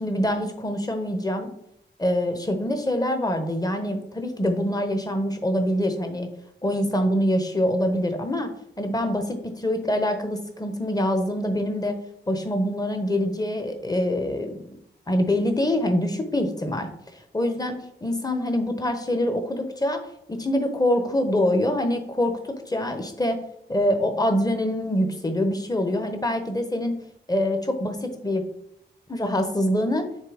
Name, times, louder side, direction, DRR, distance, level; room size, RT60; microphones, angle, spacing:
voice 1, 0.0-1.5 2.0-6.3 6.6-8.5 8.8-12.0 12.3-14.5 15.1-16.9 17.3-20.0 20.3-23.4 23.7-27.0 27.3-28.4 29.1-30.0, left 1 dB, 20° left, 7 dB, 1.0 m, -25 dB
6.6 x 3.3 x 5.0 m, 0.75 s
wide cardioid pair, 80°, 19 cm